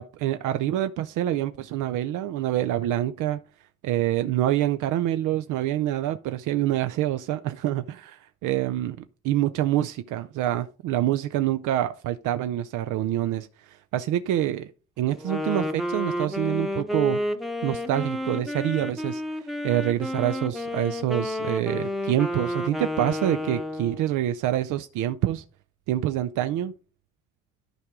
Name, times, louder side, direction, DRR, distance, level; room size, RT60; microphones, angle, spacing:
voice 1, 0.0-3.4 3.8-9.0 9.2-14.7 15.0-17.2 17.6-25.4 25.9-26.7, right 13 dB, 85° right, 0.5 m, -26 dB
Wind instrument woodwind instrument, 15.1-24.1, left 1 dB, ahead, 0.8 m, -30 dB
11.5 x 4.7 x 3.6 m
cardioid pair, 90°, 30 cm